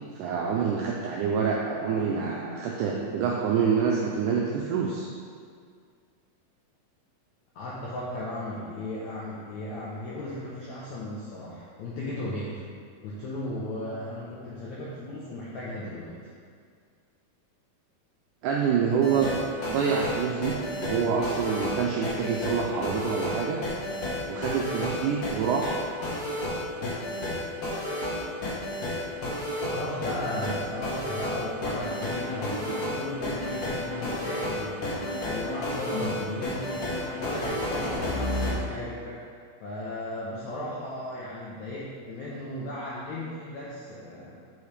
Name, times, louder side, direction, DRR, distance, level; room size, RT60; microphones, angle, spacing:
voice 1, 0.2-5.1 18.4-19.3 19.7-23.6 24.3-25.8, right 6 dB, 90° right, -2 dB, 1.8 m, -27 dB
voice 2, 7.5-12.6 13.0-16.2 29.7-36.7 37.2-39.2 39.6-44.4, left 1 dB, 80° left, -7 dB, 1.6 m, -36 dB
sound 1, 18.9-38.5, left 1 dB, 60° left, 1.6 m, -31 dB
7.0 x 4.7 x 3.3 m, 2.1 s
omnidirectional pair, 4.2 m